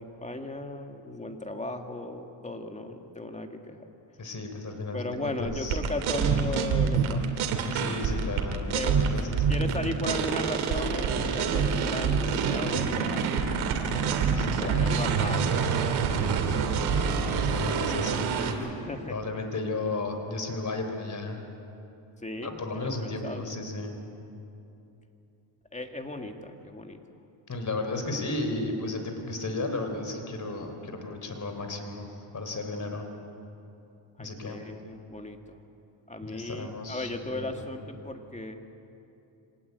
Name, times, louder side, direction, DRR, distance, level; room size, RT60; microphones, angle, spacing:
voice 1, 0.0-3.9 4.9-7.2 7.5-7.8 8.7-9.0 9.5-13.4 14.6-15.8 18.9-19.2 22.2-23.6 25.7-27.0 34.2-35.6 36.1-38.6, left 2 dB, 15° left, 5 dB, 2.1 m, -36 dB
voice 2, 4.2-5.8 7.7-9.6 14.3-15.0 16.7-18.5 19.1-21.4 22.4-23.9 27.5-32.1 32.3-33.1 34.2-34.6 36.2-37.5, left 2 dB, 35° left, 5 dB, 4.2 m, -34 dB
sound 1, 5.5-18.5, right 6 dB, 85° right, 2.4 m, -26 dB
25.5 x 19.0 x 8.3 m, 2.8 s
cardioid pair, 90°, 48 cm